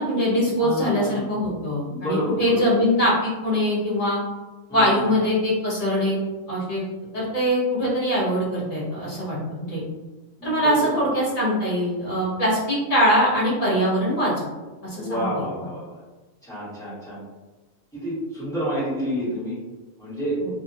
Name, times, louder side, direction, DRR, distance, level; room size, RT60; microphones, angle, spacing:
voice 1, 0.0-4.2 4.7-6.2 6.5-6.8 7.1-9.8 10.4-14.3 14.8-15.4 20.4-20.5, equal, 30° left, -7 dB, 1.1 m, -22 dB
voice 2, 0.6-1.3 1.9-2.8 4.7-5.1 10.4-10.9 14.9-16.0 16.4-17.2 17.9-19.6 20.0-20.4, equal, 5° left, -11 dB, 1.3 m, -29 dB
2.8 x 2.6 x 2.6 m, 1.2 s
omnidirectional pair, 1.4 m